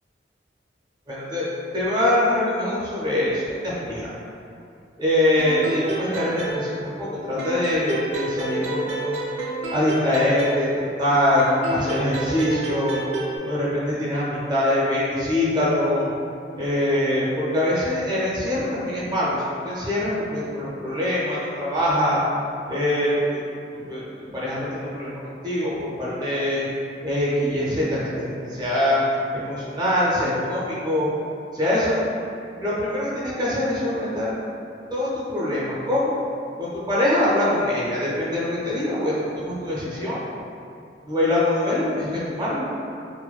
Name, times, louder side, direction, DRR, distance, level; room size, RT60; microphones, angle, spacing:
voice 1, 1.1-1.4 1.7-4.1 5.0-9.2 9.7-13.0 13.4-16.1 16.6-19.4 19.6-22.2 22.7-23.4 23.7-26.7 27.0-29.0 29.3-31.1 31.5-32.0 32.6-34.3 34.9-36.1 36.6-40.2 41.0-42.7, left 1 dB, 25° right, -7 dB, 0.5 m, -23 dB
sound 1, 5.4-7.1 7.4-11.0 11.4-13.4, right 2 dB, 75° right, 0.4 m, -30 dB
2.5 x 2.2 x 2.3 m, 2.5 s
head